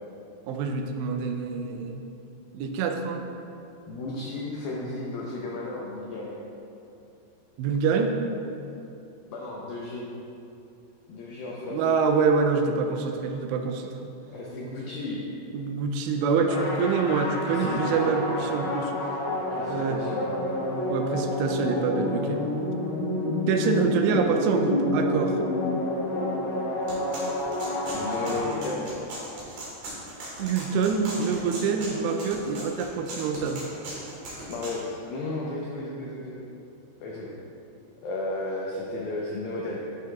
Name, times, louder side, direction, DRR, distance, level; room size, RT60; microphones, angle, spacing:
voice 1, 0.5-2.0 2.5-3.2 7.6-8.2 11.7-14.1 15.5-18.9 19.7-20.0 20.9-22.4 23.5-25.4 30.4-33.6, right 5 dB, 80° right, 4 dB, 2.6 m, -26 dB
voice 2, 3.9-6.4 9.3-10.1 11.1-12.0 14.3-15.2 16.4-16.7 17.5-18.3 19.5-20.3 27.9-28.9 34.5-36.4 37.0-37.3 38.0-39.8, left 2 dB, 85° left, -4 dB, 2.1 m, -34 dB
sound 1, 16.5-29.0, left 1 dB, 70° left, 2.3 m, -29 dB
sound 2, 26.9-34.8, right 1 dB, 60° right, 3.3 m, -38 dB
11.5 x 6.3 x 2.3 m, 2.7 s
omnidirectional pair, 5.1 m